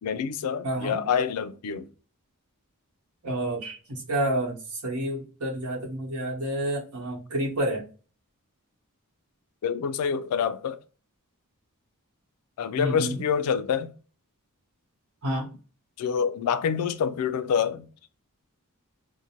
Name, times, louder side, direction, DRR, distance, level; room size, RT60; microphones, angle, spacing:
voice 1, 0.0-1.9 9.6-10.8 12.6-13.9 16.0-17.9, left 7 dB, 75° left, 0.3 m, -27 dB
voice 2, 0.6-1.0 3.2-7.8 12.8-13.2 15.2-15.5, right 1 dB, 85° right, 1.1 m, -29 dB
2.6 x 2.1 x 2.8 m
head